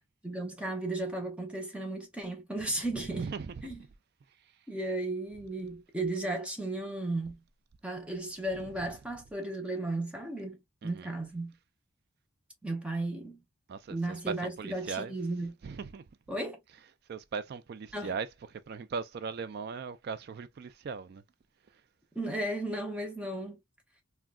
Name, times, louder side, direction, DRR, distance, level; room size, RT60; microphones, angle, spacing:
voice 1, 0.2-3.3 3.6-3.8 4.7-7.4 7.8-11.5 12.6-13.4 13.9-15.5 16.3-16.6 17.9-18.1 22.1-23.6, right 2 dB, 5° right, 0.6 m, -35 dB
voice 2, 3.1-3.5 4.4-4.5 10.8-11.1 13.7-15.1 15.6-16.1 17.1-21.2, right 5 dB, 50° right, 0.3 m, -39 dB
3.6 x 2.2 x 2.3 m
head